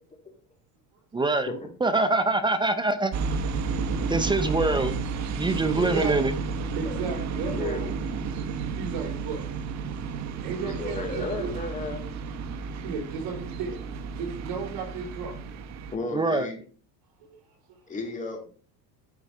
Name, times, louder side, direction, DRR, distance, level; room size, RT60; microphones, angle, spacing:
voice 1, 1.1-1.5 1.8-3.1 4.1-4.9 5.4-6.3 16.1-16.5, right 3 dB, 10° right, 10 dB, 0.5 m, -24 dB
sound 1, 3.1-16.0, right 5 dB, 40° right, 0.8 m, -32 dB
voice 2, 5.4-6.1 6.7-7.9 8.8-9.5 10.4-11.5 12.8-15.6 17.2-18.0, right 5 dB, 60° right, 3 dB, 3.7 m, -35 dB
voice 3, 7.4-7.9 10.5-12.0 15.9-16.6 17.9-18.4, left 3 dB, 15° left, 1 dB, 2.3 m, -33 dB
11.0 x 4.5 x 5.0 m, 0.41 s
cardioid pair, 145°, 44 cm